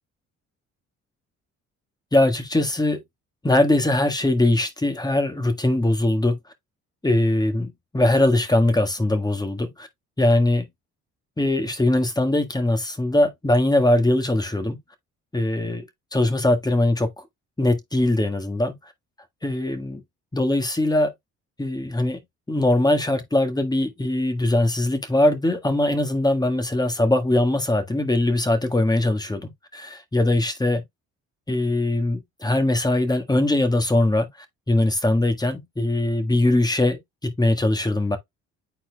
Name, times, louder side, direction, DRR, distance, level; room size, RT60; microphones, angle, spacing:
voice 1, 2.1-3.0 3.4-6.4 7.0-9.9 10.2-10.6 11.4-14.8 15.3-15.8 16.1-17.1 17.6-18.7 19.4-20.0 20.3-21.1 21.6-22.2 22.5-30.8 31.5-34.3 34.7-38.2, left 1 dB, 15° left, 1.7 m, -21 dB
10.0 x 4.3 x 2.3 m
cardioid pair, 90°, 30 cm